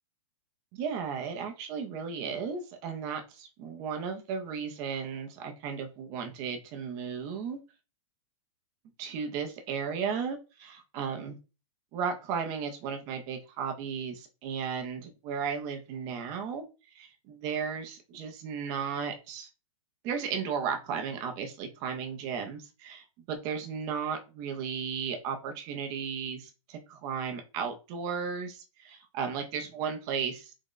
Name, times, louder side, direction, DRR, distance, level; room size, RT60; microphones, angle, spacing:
voice 1, 0.7-7.6 9.0-11.4 11.9-16.6 16.9-19.5 20.0-30.5, right 6 dB, 20° right, 4 dB, 0.4 m, -35 dB
3.5 x 2.1 x 3.7 m, 0.31 s
supercardioid pair, 175°, 18 cm